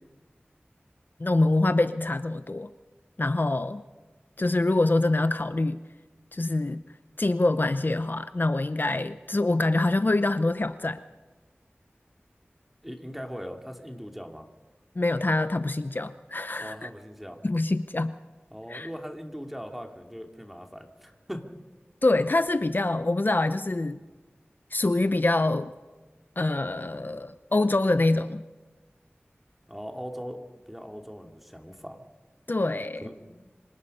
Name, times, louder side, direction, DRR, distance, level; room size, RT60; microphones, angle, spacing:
voice 1, 1.2-2.7 3.2-3.8 4.4-5.8 6.3-6.8 7.2-11.0 15.0-16.9 17.4-18.1 18.7-18.9 22.0-24.0 24.7-25.7 26.4-28.4 32.5-33.1, left 2 dB, 50° left, 11 dB, 0.7 m, -25 dB
voice 2, 12.8-14.5 16.6-17.4 18.5-21.5 29.7-32.0 33.0-33.5, equal, 5° right, 3 dB, 2.6 m, -40 dB
25.5 x 19.0 x 5.5 m, 1.2 s
wide cardioid pair, 45°, 4 cm